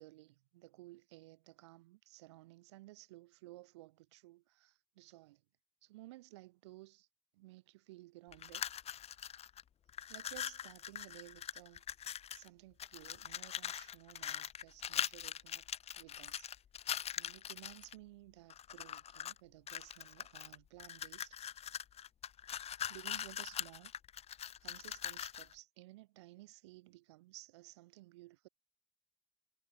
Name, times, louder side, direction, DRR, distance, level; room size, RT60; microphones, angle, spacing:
voice 1, 0.0-5.4 5.8-7.1 7.3-8.6 10.1-11.8 12.3-15.7 16.0-16.5 16.8-21.4 22.5-23.9 24.4-28.5, right 19 dB, 90° right, 0.8 m, -56 dB
sound 1, 8.3-9.6 9.9-12.5 12.8-17.9 18.5-19.4 19.7-25.5, left 9 dB, 45° left, 0.4 m, -42 dB
hypercardioid pair, 45°, 14 cm